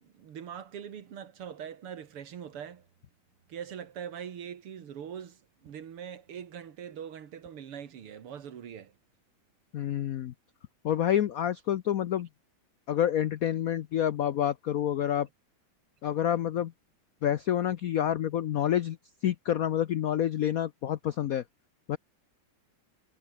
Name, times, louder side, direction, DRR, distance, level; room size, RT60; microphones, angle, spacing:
voice 1, 0.0-2.9 3.5-8.9, right 8 dB, 85° right, 2.7 m, -42 dB
voice 2, 9.7-10.3 10.8-12.3 12.9-15.3 16.0-16.7 17.2-19.0 19.2-21.4 21.9-22.0, left 10 dB, 85° left, 0.7 m, -28 dB
omnidirectional pair, 2.4 m